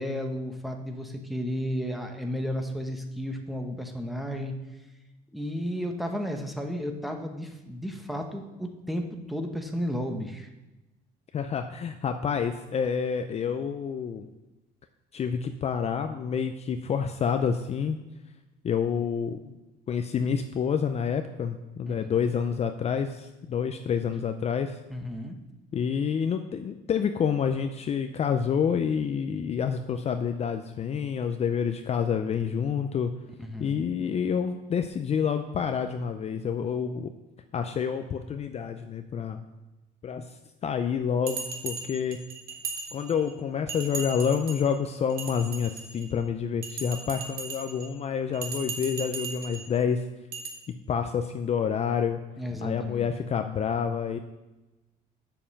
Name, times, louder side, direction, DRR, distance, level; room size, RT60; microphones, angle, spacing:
voice 1, 0.0-4.6 5.3-10.5 21.9-22.1 24.9-25.4 33.4-33.8 52.4-53.1, equal, ahead, 3 dB, 1.0 m, -33 dB
voice 2, 11.3-14.3 15.1-18.0 18.6-19.5 19.9-24.8 25.7-33.1 33.6-37.1 37.5-39.4 40.0-40.3 40.6-42.2 42.9-50.0 50.9-52.2 52.6-54.2, left 7 dB, 40° left, 8 dB, 0.5 m, -28 dB
Bell, 41.3-43.3 43.7-44.7 45.1-46.1 46.6-47.9 48.3-49.7 50.3-50.5, right 4 dB, 65° right, 1.6 m, -37 dB
6.9 x 5.4 x 7.1 m, 1.0 s
cardioid pair, 110°, 17 cm